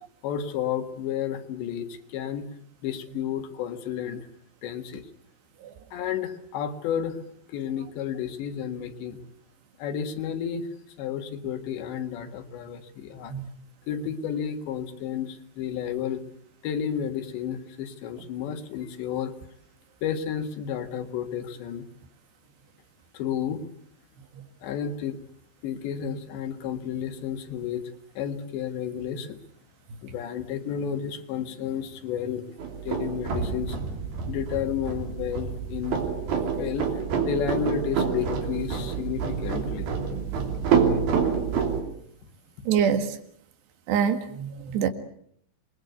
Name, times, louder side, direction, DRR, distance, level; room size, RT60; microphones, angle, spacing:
voice 1, 0.2-2.5 2.8-4.3 4.6-5.1 5.9-7.2 7.5-9.2 9.8-10.7 11.0-13.3 13.9-16.2 16.6-19.3 20.0-21.9 23.1-23.7 24.6-25.2 25.6-29.4 30.0-32.5 32.8-33.8 34.3-36.0 36.6-39.9, left 8 dB, 90° left, 7 dB, 4.0 m, -31 dB
sound 1, 32.6-41.8, right 6 dB, 60° right, 4.7 m, -27 dB
voice 2, 42.7-43.2 43.9-44.9, right 8 dB, 80° right, 8 dB, 4.0 m, -25 dB
28.0 x 22.0 x 8.2 m, 0.67 s
omnidirectional pair, 4.9 m